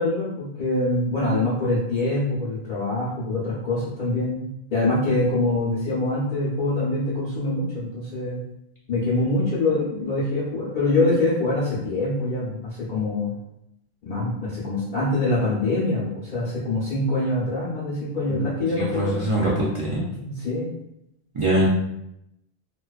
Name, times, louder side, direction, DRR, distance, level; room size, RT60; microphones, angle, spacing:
voice 1, 0.0-8.4 8.9-13.3 14.0-19.2 20.2-20.7, left 2 dB, 55° left, -8 dB, 0.8 m, -24 dB
voice 2, 18.8-20.0 21.3-21.7, right 1 dB, 55° right, -6 dB, 0.3 m, -23 dB
2.4 x 2.3 x 2.3 m, 0.82 s
omnidirectional pair, 1.1 m